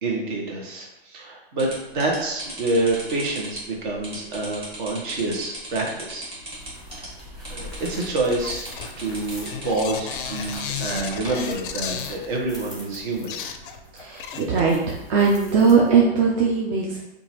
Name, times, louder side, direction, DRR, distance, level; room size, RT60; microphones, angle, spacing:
voice 1, 0.0-6.3 7.0-7.1 7.5-8.7 9.0-13.3, right 2 dB, 50° right, -1 dB, 1.1 m, -27 dB
sound 1, 1.6-11.3, right 1 dB, 15° right, 1.3 m, -38 dB
sound 2, 6.3-16.2, equal, ahead, 1.0 m, -43 dB
sound 3, 8.1-12.4 12.9-13.0 13.3-14.9 15.2-15.3, left 8 dB, 55° left, 0.4 m, -34 dB
voice 2, 13.9-14.8 15.1-17.0, right 5 dB, 30° right, -3 dB, 0.5 m, -19 dB
2.8 x 2.5 x 4.1 m, 0.90 s
hypercardioid pair, 135°, 32 cm